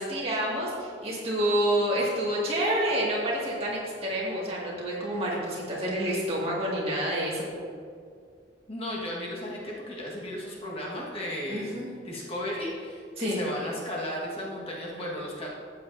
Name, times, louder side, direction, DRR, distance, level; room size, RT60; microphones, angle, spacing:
voice 1, 0.0-7.5 11.5-11.9 13.2-13.4, right 1 dB, 30° right, -5 dB, 2.1 m, -28 dB
voice 2, 8.7-11.7 12.0-15.5, left 1 dB, 30° left, -5 dB, 1.6 m, -35 dB
13.5 x 8.4 x 2.7 m, 2.2 s
head